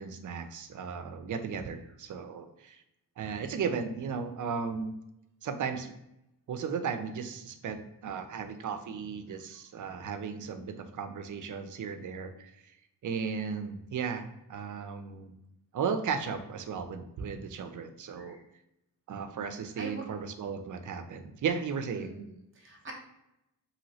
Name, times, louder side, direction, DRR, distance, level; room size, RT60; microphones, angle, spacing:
voice 1, 0.0-2.8 3.2-4.9 5.4-5.9 6.5-12.7 13.0-15.4 15.7-18.4 19.1-22.2, right 6 dB, 50° right, 8 dB, 0.5 m, -35 dB
voice 2, 18.1-18.4 19.8-20.0 21.9-22.9, right 4 dB, 30° right, 1 dB, 0.8 m, -44 dB
2.9 x 2.8 x 2.7 m, 0.85 s
cardioid pair, 90°, 42 cm